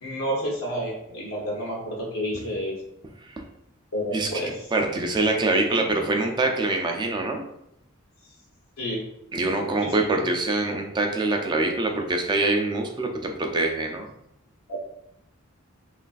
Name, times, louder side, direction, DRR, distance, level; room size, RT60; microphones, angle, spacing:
voice 1, 0.0-2.8 3.9-4.7 8.8-9.0 9.8-10.0 14.7-14.8, equal, 85° left, -3 dB, 0.7 m, -30 dB
voice 2, 4.7-7.4 9.3-14.1, right 2 dB, 20° right, 3 dB, 0.3 m, -24 dB
3.1 x 2.4 x 2.3 m, 0.81 s
head